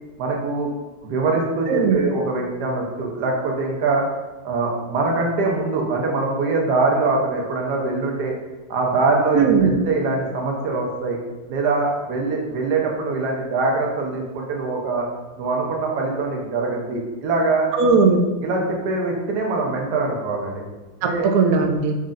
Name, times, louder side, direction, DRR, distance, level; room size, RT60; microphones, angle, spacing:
voice 1, 0.2-0.7 1.0-4.0 4.4-8.3 8.7-11.2 11.5-15.1 15.4-17.7 18.4-20.6 21.0-21.3, right 3 dB, 65° right, 0 dB, 1.3 m, -23 dB
voice 2, 1.7-2.0 9.3-9.7 17.8-18.2 21.0-22.0, right 5 dB, 85° right, 4 dB, 0.7 m, -17 dB
5.3 x 3.6 x 2.5 m, 1.2 s
omnidirectional pair, 2.1 m